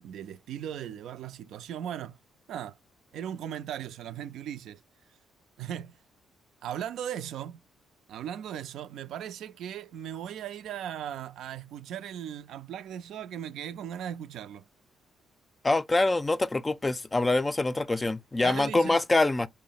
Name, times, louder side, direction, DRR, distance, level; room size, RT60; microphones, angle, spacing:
voice 1, 0.0-2.2 2.5-2.8 3.1-4.8 5.6-6.0 6.6-7.6 8.1-14.7 18.4-19.0, right 10 dB, 80° right, 0.4 m, -38 dB
voice 2, 15.6-19.5, left 2 dB, 20° left, 0.3 m, -25 dB
4.8 x 2.0 x 3.9 m
cardioid pair, 90°, 0 cm